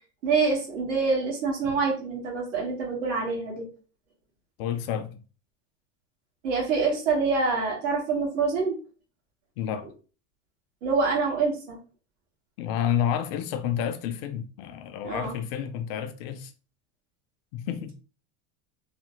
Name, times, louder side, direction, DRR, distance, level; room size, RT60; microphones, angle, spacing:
voice 1, 0.2-3.7 6.4-8.8 10.8-11.8 15.0-15.3, right 4 dB, 85° right, 1.6 m, -26 dB
voice 2, 4.6-5.2 9.6-9.9 12.6-16.5 17.5-17.9, left 9 dB, 55° left, 0.5 m, -30 dB
3.2 x 2.1 x 3.0 m
supercardioid pair, 155°, 36 cm